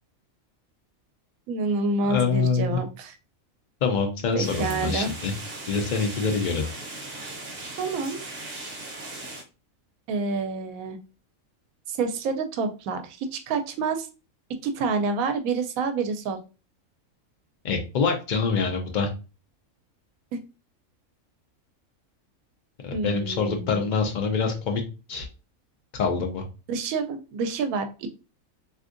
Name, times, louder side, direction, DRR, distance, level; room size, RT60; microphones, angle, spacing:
voice 1, 1.5-3.2 4.3-5.1 7.8-8.2 10.1-11.0 11.9-14.1 14.6-16.4 22.9-23.9 26.7-28.1, right 4 dB, 85° right, 8 dB, 1.0 m, -28 dB
voice 2, 2.1-2.8 3.8-5.3 5.7-6.7 17.6-19.1 22.8-24.8 25.1-25.3 25.9-26.4, left 5 dB, 85° left, 3 dB, 0.4 m, -25 dB
sound 1, 4.4-9.4, right 2 dB, 55° right, 0.9 m, -38 dB
3.4 x 2.7 x 2.5 m, 0.32 s
omnidirectional pair, 1.4 m